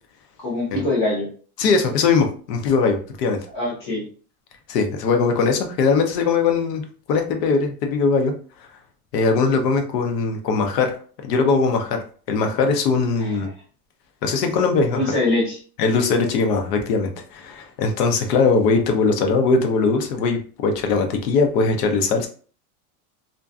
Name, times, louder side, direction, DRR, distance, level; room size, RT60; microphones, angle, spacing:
voice 1, 0.4-1.3 3.5-4.0 13.2-13.5 14.9-15.6, left 2 dB, 20° left, -5 dB, 0.3 m, -23 dB
voice 2, 1.6-3.4 4.7-8.3 9.1-11.0 11.2-13.5 14.2-15.0 15.8-22.3, left 4 dB, 90° left, 5 dB, 0.7 m, -20 dB
2.5 x 2.2 x 2.3 m, 0.41 s
supercardioid pair, 175°, 47 cm